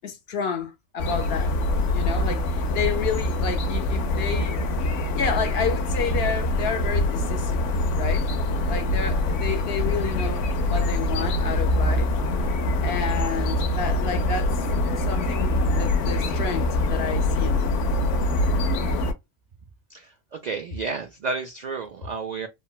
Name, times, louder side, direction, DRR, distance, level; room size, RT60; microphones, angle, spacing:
voice 1, 0.0-1.6 1.9-4.6 5.1-7.6 7.9-8.3 8.7-12.1 12.8-14.6 15.0-17.8, left 6 dB, 60° left, 0.9 m, -30 dB
sound 1, 1.0-19.1, left 1 dB, 85° left, 1.0 m, -24 dB
voice 2, 19.9-22.5, right 4 dB, 70° right, 0.4 m, -31 dB
3.7 x 2.1 x 2.2 m
omnidirectional pair, 1.2 m